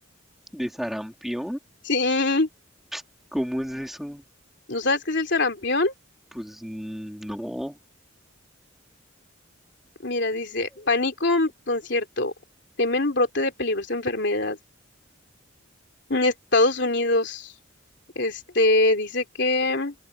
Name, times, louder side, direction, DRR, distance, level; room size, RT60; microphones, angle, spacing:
voice 1, 0.5-1.6 2.9-3.0 3.3-4.2 6.3-7.8, equal, ahead, 3.2 m, -31 dB
voice 2, 1.9-2.5 4.7-5.9 10.0-12.3 12.8-14.6 16.1-17.5 18.2-19.9, left 2 dB, 55° left, 3.5 m, -23 dB
head